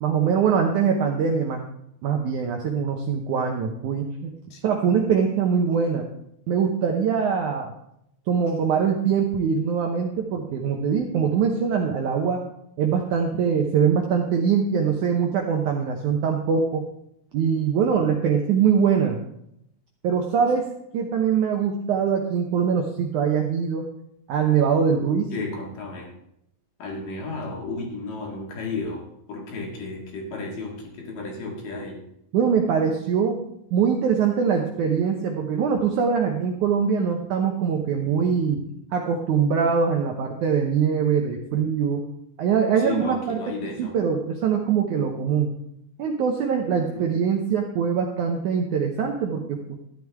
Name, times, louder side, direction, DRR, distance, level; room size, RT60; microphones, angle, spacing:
voice 1, 0.0-1.6 2.0-4.3 4.6-6.1 6.5-7.7 8.3-12.4 12.8-16.9 17.3-19.2 20.0-23.9 24.3-25.3 32.3-33.4 33.7-38.6 38.9-42.1 42.4-45.5 46.0-49.6, right 6 dB, 75° right, 2 dB, 1.8 m, -23 dB
voice 2, 25.3-26.1 26.8-29.0 29.3-32.0 42.8-44.0 46.7-47.1, left 3 dB, 60° left, 0 dB, 3.4 m, -33 dB
13.0 x 11.0 x 3.5 m, 0.77 s
omnidirectional pair, 4.6 m